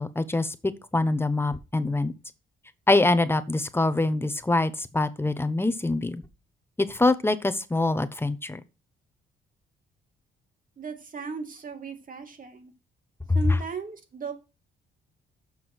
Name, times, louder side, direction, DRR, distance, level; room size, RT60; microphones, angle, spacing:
voice 1, 0.0-2.1 2.9-6.2 6.8-8.6, left 2 dB, 10° left, 1.0 m, -24 dB
voice 2, 10.8-12.7 13.3-14.3, right 5 dB, 45° right, 2.5 m, -36 dB
7.3 x 5.9 x 6.1 m
cardioid pair, 90°, 20 cm